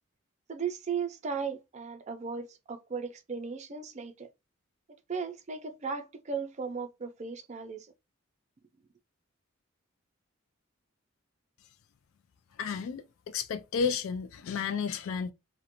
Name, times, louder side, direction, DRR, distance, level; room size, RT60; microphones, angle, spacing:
voice 1, 0.5-4.3 5.1-7.9, right 5 dB, 35° right, 0.4 m, -36 dB
voice 2, 12.6-15.3, left 6 dB, 75° left, 0.3 m, -32 dB
2.4 x 2.1 x 2.8 m
head